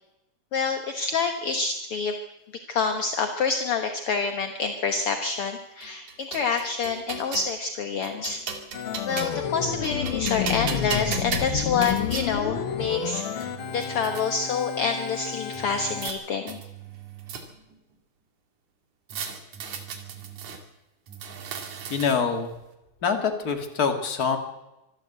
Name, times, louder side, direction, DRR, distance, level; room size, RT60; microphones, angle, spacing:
voice 1, 0.5-2.1 2.5-8.4 9.1-16.6, left 5 dB, 60° left, 6 dB, 1.6 m, -27 dB
sound 1, 5.8-7.5 8.0-9.5 9.8-12.3 13.0-13.1 13.4-14.2 15.5-16.2 16.5-17.7 19.1-20.6 21.1-22.4, right 6 dB, 60° right, 3.4 m, -36 dB
Organ, 8.7-16.1, left 8 dB, 90° left, 1.1 m, -30 dB
voice 2, 21.9-22.5 23.0-24.4, left 5 dB, 30° left, 5 dB, 2.2 m, -25 dB
25.0 x 13.0 x 8.1 m, 0.95 s
omnidirectional pair, 4.1 m